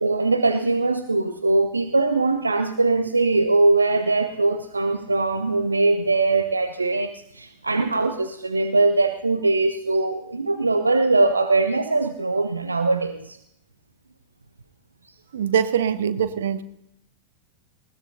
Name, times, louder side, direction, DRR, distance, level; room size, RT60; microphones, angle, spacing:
voice 1, 0.0-13.4, right 3 dB, 80° right, 9 dB, 0.8 m, -21 dB
voice 2, 15.3-16.6, right 8 dB, 60° right, 12 dB, 1.1 m, -23 dB
20.0 x 19.0 x 2.8 m, 0.76 s
figure-of-eight pair, 90°, 0 cm